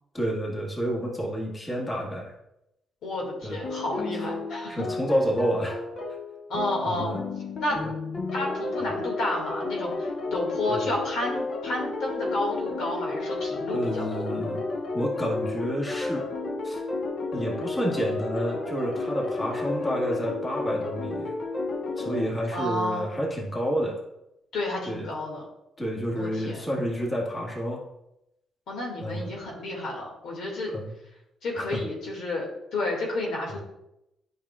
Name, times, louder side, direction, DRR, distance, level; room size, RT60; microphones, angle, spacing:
voice 1, 0.1-2.3 3.4-3.6 4.1-4.3 4.7-5.8 6.8-7.2 7.8-7.9 10.7-10.9 13.7-14.6 14.9-16.3 16.6-16.8 17.3-21.3 22.0-24.0 24.9-25.1 25.8-27.8 29.0-29.4 30.7-30.9 31.5-31.8 33.5-33.6, equal, 20° left, -2 dB, 1.9 m, -29 dB
voice 2, 3.0-4.8 6.5-7.1 7.6-7.8 8.3-14.3 22.5-23.2 24.5-25.4 26.1-26.6 28.7-30.7 31.4-32.5 32.7-33.6, left 2 dB, 75° left, -1 dB, 2.2 m, -31 dB
sound 1, 3.6-22.3, left 3 dB, 50° left, 1.2 m, -32 dB
9.0 x 5.7 x 2.5 m, 0.85 s
cardioid pair, 90°, 0 cm